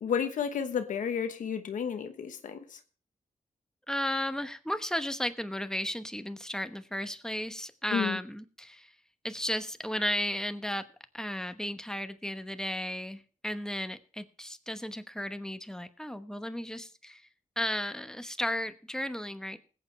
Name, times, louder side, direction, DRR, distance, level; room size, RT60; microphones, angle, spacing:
voice 1, 0.0-2.8 7.9-8.2, left 7 dB, 90° left, 8 dB, 1.1 m, -32 dB
voice 2, 3.9-8.9 9.2-10.9 11.1-17.2 17.6-19.6, equal, 5° left, 10 dB, 1.0 m, -34 dB
20.0 x 8.5 x 3.3 m, 0.39 s
cardioid pair, 70°, 13 cm